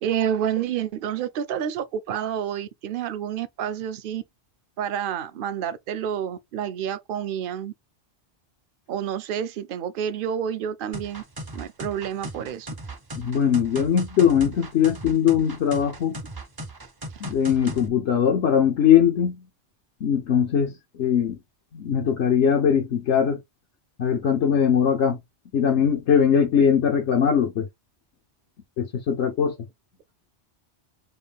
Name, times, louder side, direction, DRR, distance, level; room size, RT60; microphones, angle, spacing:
voice 1, 0.0-4.2 4.8-7.7 8.9-11.2 11.5-12.7 16.1-16.2, right 9 dB, 60° right, 0.7 m, -29 dB
sound 1, 10.9-17.9, right 1 dB, 30° right, 0.5 m, -37 dB
voice 2, 13.2-16.1 17.2-19.4 20.0-21.4 21.7-23.4 24.0-25.2 25.5-27.7 28.8-29.5, left 8 dB, 85° left, 1.1 m, -21 dB
4.4 x 2.2 x 3.5 m
omnidirectional pair, 1.1 m